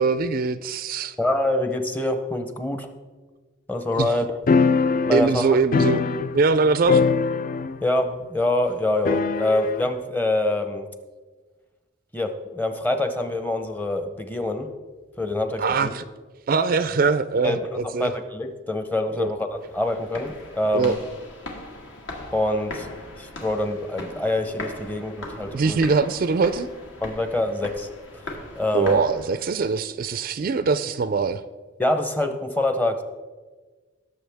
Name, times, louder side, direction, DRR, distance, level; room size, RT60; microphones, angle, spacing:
voice 1, 0.0-1.2 4.0-4.1 5.1-6.0 6.3-7.0 15.6-16.0 16.5-18.1 19.2-19.3 20.7-21.0 25.5-26.7 28.7-31.4, right 4 dB, 45° right, 13 dB, 0.4 m, -22 dB
voice 2, 1.2-2.9 3.7-4.3 5.1-5.6 7.8-10.9 12.1-14.7 15.2-15.9 17.4-21.0 22.3-22.9 23.2-25.8 27.0-27.9 28.6-29.0 31.8-33.0, left 1 dB, 10° left, 7 dB, 0.7 m, -25 dB
sound 1, 4.5-6.6 6.9-8.1 9.1-9.9, left 4 dB, 45° left, 0.3 m, -22 dB
sound 2, 19.6-29.6, left 2 dB, 70° left, 1.8 m, -39 dB
17.5 x 7.1 x 3.5 m, 1.3 s
head